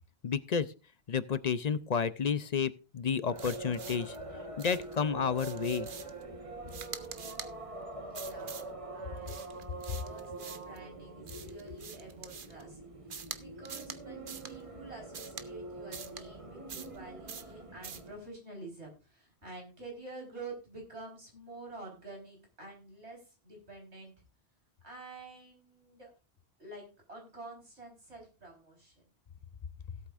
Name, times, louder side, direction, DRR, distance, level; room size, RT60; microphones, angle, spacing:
voice 1, 0.2-0.7 1.1-4.2 4.6-5.9, left 6 dB, 45° left, 15 dB, 0.6 m, -31 dB
sound 1, 3.3-18.1, right 2 dB, 30° right, 1.4 m, -44 dB
sound 2, 3.4-4.2 4.6-4.9 5.4-6.2 6.7-7.5 8.1-8.7 9.3-10.8 11.3-12.6 13.1-13.4 13.7-14.0 14.3-14.5 15.1-15.5 15.9-16.2 16.7-17.0 17.3-17.5 17.8-18.1, right 6 dB, 55° right, 1.0 m, -45 dB
voice 2, 8.0-12.8 13.4-24.1 24.8-26.1 26.6-29.0, right 2 dB, 90° right, 0 dB, 4.9 m, -49 dB
17.5 x 8.3 x 2.5 m, 0.31 s
omnidirectional pair, 1.1 m